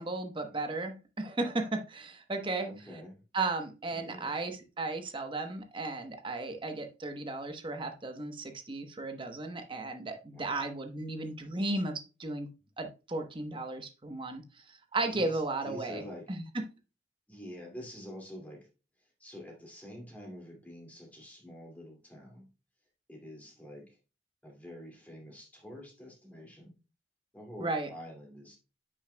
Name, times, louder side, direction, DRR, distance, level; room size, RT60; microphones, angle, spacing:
voice 1, 0.0-2.7 3.3-12.5 12.8-14.4 14.9-16.0 16.3-16.4 27.6-27.9, right 2 dB, 30° right, 6 dB, 1.0 m, -35 dB
voice 2, 2.6-3.2 3.9-4.3 10.3-10.7 15.1-16.3 17.3-18.7 19.2-22.5 23.1-24.0 24.4-26.8 27.3-28.6, equal, 10° left, -1 dB, 2.3 m, -47 dB
10.0 x 6.2 x 2.2 m, 0.30 s
head